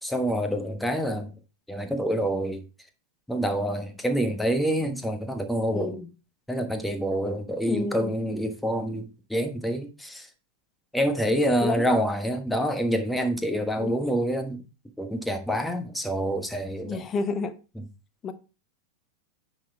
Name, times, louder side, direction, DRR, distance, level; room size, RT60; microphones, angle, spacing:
voice 1, 0.0-1.3 1.7-2.6 3.3-6.0 6.5-10.3 10.9-14.6 15.0-17.0, equal, 5° left, 1.3 m, -27 dB
voice 2, 5.7-6.1 7.6-8.1 11.6-11.9 13.8-13.9 16.8-17.6 18.2-18.3, left 4 dB, 25° left, 1.0 m, -30 dB
9.4 x 4.2 x 4.8 m
figure-of-eight pair, 90°, 0 cm